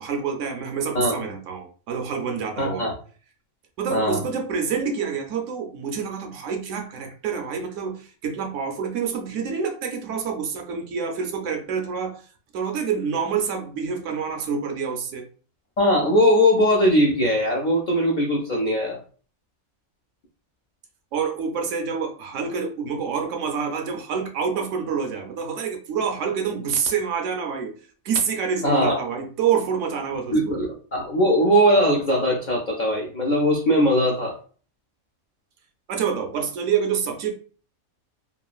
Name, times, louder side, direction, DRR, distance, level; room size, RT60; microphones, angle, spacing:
voice 1, 0.0-2.9 3.8-12.2 12.5-15.2 21.1-27.7 28.0-30.6 35.9-37.3, right 6 dB, 70° right, 3 dB, 0.8 m, -27 dB
voice 2, 2.6-2.9 3.9-4.2 15.8-19.0 28.6-29.0 30.3-34.4, equal, 80° left, -2 dB, 0.4 m, -20 dB
3.0 x 2.4 x 2.3 m, 0.41 s
omnidirectional pair, 1.5 m